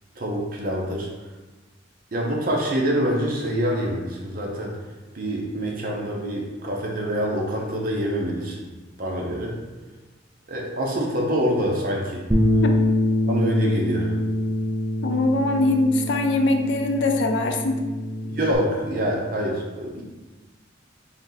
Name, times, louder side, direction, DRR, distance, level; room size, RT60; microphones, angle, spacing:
voice 1, 0.2-1.1 2.1-4.8 5.1-8.6 9.0-9.6 10.5-12.2 13.2-14.1 18.3-20.0, equal, 50° right, -1 dB, 0.7 m, -26 dB
Bass guitar, 12.3-18.6, left 1 dB, 10° right, 0.4 m, -24 dB
voice 2, 15.0-17.8, left 2 dB, 70° left, 4 dB, 0.4 m, -22 dB
3.5 x 2.7 x 3.9 m, 1.2 s
head